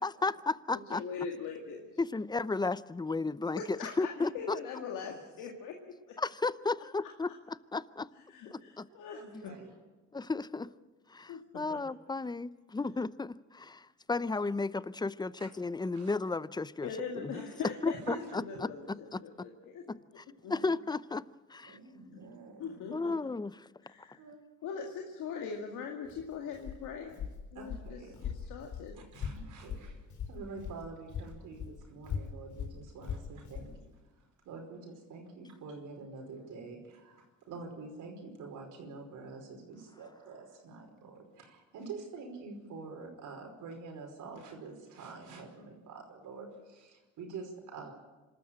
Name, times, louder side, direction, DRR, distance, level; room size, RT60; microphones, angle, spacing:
voice 1, 0.0-1.0 2.0-3.6 4.0-4.6 6.2-8.1 8.5-8.9 9.3-9.4 10.1-10.7 11.1-16.9 17.2-17.3 17.8-18.7 19.1-19.2 19.9-21.2 21.5-21.8 22.9-23.7, left 3 dB, 15° left, 18 dB, 0.6 m, -34 dB
voice 2, 0.9-1.8 3.6-5.8 8.3-9.5 11.3-11.4 11.7-11.8 16.8-19.8 20.4-20.5 22.1-22.3 22.6-23.1 23.9-24.1 24.6-27.1 27.5-28.0 28.5-28.9, left 6 dB, 85° left, 2 dB, 2.2 m, -41 dB
voice 3, 9.1-9.7 15.4-15.5 15.9-16.1 17.3-17.7 18.1-18.4 20.4-20.7 21.6-22.7 24.2-24.9 27.5-28.3 28.9-33.9 34.5-47.9, right 4 dB, 80° right, 2 dB, 5.2 m, -47 dB
Walk footsteps, 26.0-30.8 31.1-33.7, left 7 dB, 70° left, 4.3 m, -40 dB
26.0 x 13.0 x 8.8 m, 1.2 s
cardioid pair, 90°, 30 cm